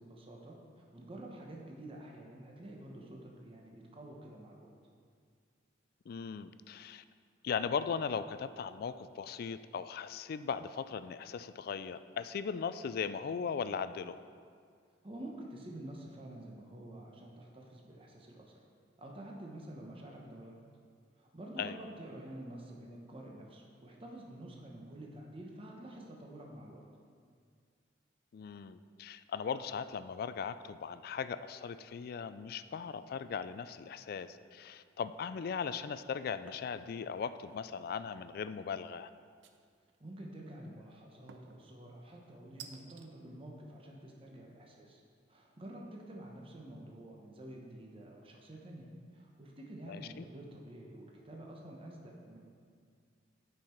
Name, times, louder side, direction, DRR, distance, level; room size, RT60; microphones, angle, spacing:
voice 1, 0.0-4.7 15.0-18.6 19.0-20.6 21.2-26.8 40.0-45.0 45.3-52.4, right 1 dB, 30° right, -1 dB, 0.9 m, -49 dB
voice 2, 6.1-7.0 7.4-14.2 21.6-21.8 28.3-39.1 49.8-50.2, left 6 dB, 55° left, 12 dB, 0.3 m, -38 dB
sound 1, 36.5-36.8 37.2-37.7 39.4-40.0 41.3-41.6 42.6-43.1, right 7 dB, 75° right, 0.5 m, -53 dB
9.0 x 5.6 x 4.4 m, 2.1 s
head